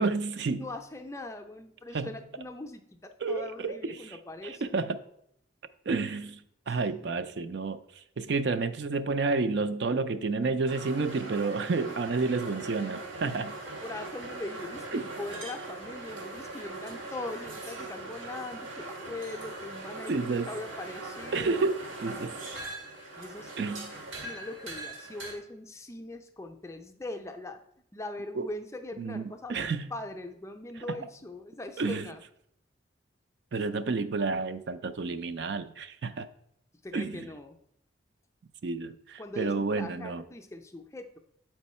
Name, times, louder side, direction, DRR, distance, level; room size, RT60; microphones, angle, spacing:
voice 1, 0.0-0.7 1.9-2.1 3.2-4.2 4.4-5.0 5.9-7.8 8.2-13.6 14.9-15.0 20.1-20.5 21.3-22.4 23.6-23.9 28.4-28.5 29.0-29.9 31.8-32.1 33.5-36.3 36.9-37.3 38.6-40.2, right 3 dB, 60° right, 11 dB, 0.4 m, -30 dB
voice 2, 0.5-4.8 6.7-6.8 13.8-21.7 23.2-23.8 24.2-27.6 27.9-32.2 36.8-37.6 39.2-41.2, left 2 dB, 15° left, 5 dB, 0.4 m, -41 dB
sound 1, 10.7-25.3, right 2 dB, 90° right, 1.6 m, -41 dB
7.7 x 4.5 x 4.2 m, 0.72 s
head